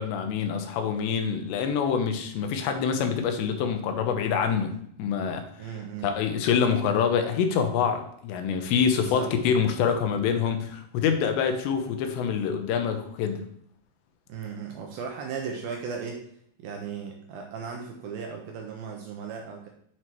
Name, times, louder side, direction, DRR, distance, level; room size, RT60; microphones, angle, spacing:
voice 1, 0.0-5.4 6.0-13.4, left 7 dB, 85° left, 6 dB, 3.0 m, -26 dB
voice 2, 5.6-6.1 8.9-9.3 14.3-16.2 16.6-19.7, right 6 dB, 75° right, 2 dB, 2.2 m, -36 dB
8.1 x 4.5 x 4.4 m, 0.66 s
omnidirectional pair, 5.0 m